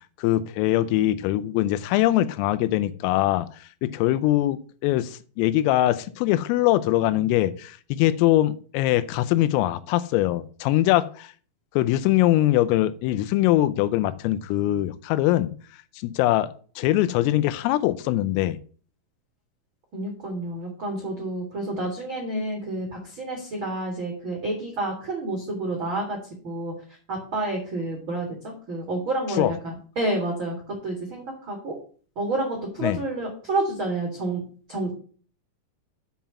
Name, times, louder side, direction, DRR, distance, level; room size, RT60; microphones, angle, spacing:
voice 1, 0.2-3.5 3.8-11.3 11.8-15.5 16.0-16.5 16.8-18.6 29.4-29.5 32.8-33.0, left 14 dB, 85° left, 3.3 m, -22 dB
voice 2, 19.9-26.2 26.4-26.7 27.1-31.7 32.1-34.4 34.7-34.9, right 2 dB, 65° right, 1.2 m, -29 dB
7.5 x 5.8 x 6.9 m
omnidirectional pair, 5.9 m